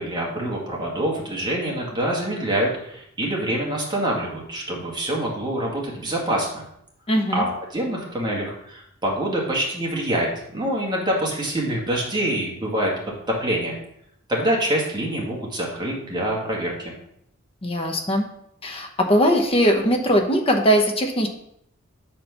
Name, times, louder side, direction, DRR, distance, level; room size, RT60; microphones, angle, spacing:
voice 1, 0.0-6.6 7.3-7.5 7.7-12.9 13.3-13.8 14.3-16.9, right 1 dB, 20° right, -3 dB, 1.8 m, -25 dB
voice 2, 7.1-7.5 17.6-18.2 18.6-21.3, equal, 30° left, 4 dB, 0.9 m, -20 dB
6.5 x 4.4 x 5.6 m, 0.74 s
head